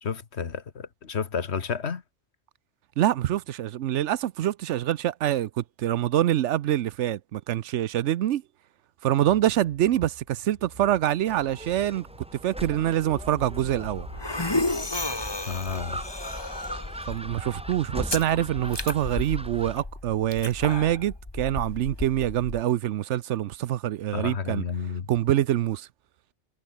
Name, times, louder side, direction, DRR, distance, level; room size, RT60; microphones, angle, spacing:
voice 1, 0.0-2.0 15.5-16.0 24.1-25.1, left 6 dB, 65° left, 1.6 m, -31 dB
voice 2, 3.0-8.4 9.0-12.1 12.4-14.1 17.1-24.6 25.1-25.9, right 12 dB, 75° right, 0.9 m, -25 dB
sound 1, 9.3-14.7, right 2 dB, 55° right, 5.8 m, -50 dB
Gull seagull, 11.3-19.8, right 1 dB, 5° right, 1.3 m, -40 dB
sound 2, 13.1-22.6, left 2 dB, 20° left, 1.7 m, -33 dB
omnidirectional pair, 1.2 m